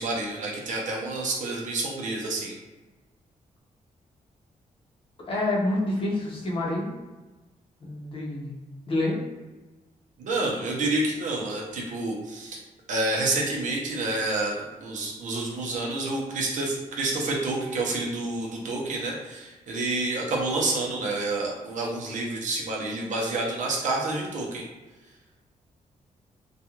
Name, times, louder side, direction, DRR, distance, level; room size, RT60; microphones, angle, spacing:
voice 1, 0.0-2.5 10.2-12.6 12.9-24.6, right 2 dB, 70° right, -2 dB, 0.7 m, -28 dB
voice 2, 5.3-6.9 7.8-8.5 8.9-9.2, left 2 dB, 40° left, -4 dB, 0.7 m, -27 dB
2.4 x 2.3 x 2.9 m, 1.2 s
wide cardioid pair, 140°, 14 cm